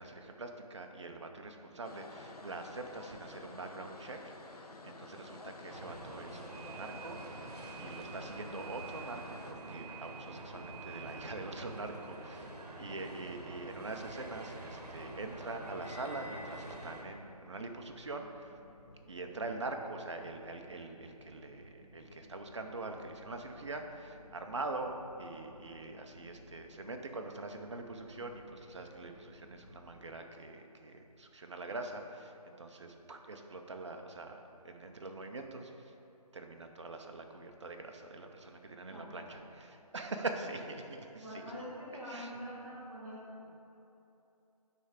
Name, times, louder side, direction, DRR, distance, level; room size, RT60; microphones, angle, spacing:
voice 1, 0.0-7.5 7.8-18.6 19.1-34.4 34.6-35.8 36.3-41.4 42.1-42.3, right 2 dB, 45° right, 4 dB, 0.6 m, -44 dB
sound 1, 1.8-9.5, left 2 dB, 70° left, 0.7 m, -51 dB
sound 2, 5.7-17.0, right 2 dB, 75° right, 1.1 m, -46 dB
sound 3, 13.4-30.1, left 1 dB, 35° left, 1.1 m, -58 dB
voice 2, 38.9-39.4 41.1-43.6, equal, ahead, -19 dB, 0.6 m, -45 dB
9.2 x 3.3 x 4.9 m, 2.9 s
figure-of-eight pair, 170°, 20 cm